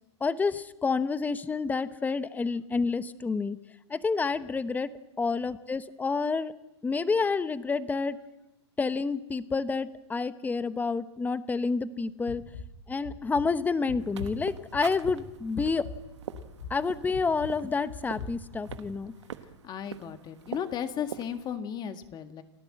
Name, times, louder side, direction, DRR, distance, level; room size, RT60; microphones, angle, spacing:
voice 1, 0.2-3.6 3.9-4.9 5.2-6.5 6.8-8.2 8.8-12.4 12.9-15.8 16.7-19.1, left 4 dB, 10° left, 13 dB, 0.9 m, -29 dB
sound 1, 12.3-12.7 13.0-13.4 13.9-14.3 14.7-15.2 15.5-16.0 16.3-16.8 17.1-17.5 17.9-18.4 18.7-18.8, left 5 dB, 80° left, 7.7 m, -40 dB
sound 2, 14.0-21.6, right 8 dB, 90° right, 1.3 m, -44 dB
voice 2, 19.6-22.4, left 8 dB, 30° left, 8 dB, 1.7 m, -35 dB
29.0 x 12.5 x 7.7 m, 0.97 s
hypercardioid pair, 120°, 15 cm